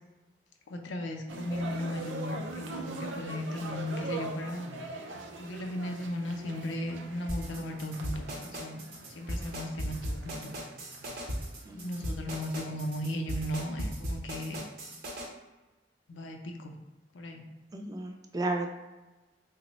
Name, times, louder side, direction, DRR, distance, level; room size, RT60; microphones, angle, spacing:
voice 1, 0.7-4.7 5.4-10.6 11.7-14.6 16.1-16.8 17.1-17.4, left 1 dB, 85° left, 3 dB, 0.5 m, -36 dB
sound 1, 1.3-13.5, right 3 dB, 85° right, 0.4 m, -42 dB
sound 2, 7.3-15.3, equal, 55° right, 0.7 m, -37 dB
voice 2, 11.7-12.0 17.7-18.7, right 2 dB, 20° right, 3 dB, 0.3 m, -34 dB
3.0 x 2.1 x 3.9 m, 1.1 s
head